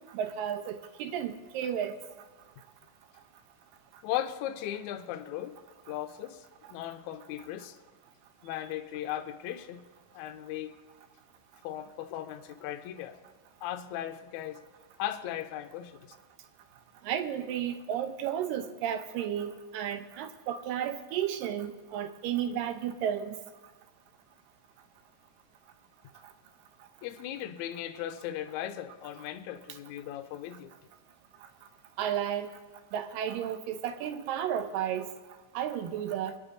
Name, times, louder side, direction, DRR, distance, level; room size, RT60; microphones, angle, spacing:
voice 1, 0.1-2.0 17.0-23.4 32.0-32.6 32.9-35.1 35.5-36.4, right 9 dB, 80° right, 2.3 m, -33 dB
voice 2, 4.0-5.6 5.9-7.8 8.4-9.9 10.1-10.7 11.6-13.2 13.6-14.6 15.0-16.1 27.0-30.7, left 12 dB, 90° left, 1.7 m, -37 dB
23.5 x 9.8 x 2.6 m
omnidirectional pair, 4.2 m